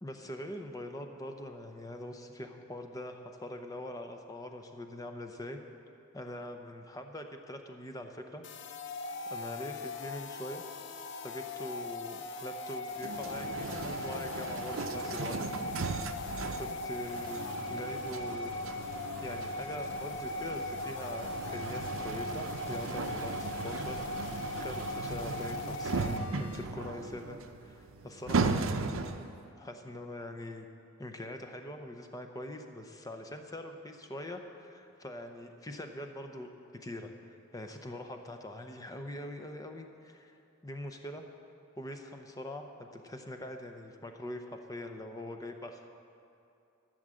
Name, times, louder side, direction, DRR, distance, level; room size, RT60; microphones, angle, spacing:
voice 1, 0.0-5.6 6.1-8.4 9.3-10.6 11.2-15.4 15.9-16.0 16.5-18.6 19.2-29.0 29.6-30.7 31.0-40.4 40.6-41.3 41.8-45.8, left 1 dB, 15° left, 5 dB, 0.7 m, -43 dB
sound 1, 8.4-26.6, left 2 dB, 60° left, 0.6 m, -39 dB
sound 2, 13.0-29.4, right 4 dB, 75° right, 0.6 m, -37 dB
14.5 x 6.4 x 7.5 m, 2.6 s
head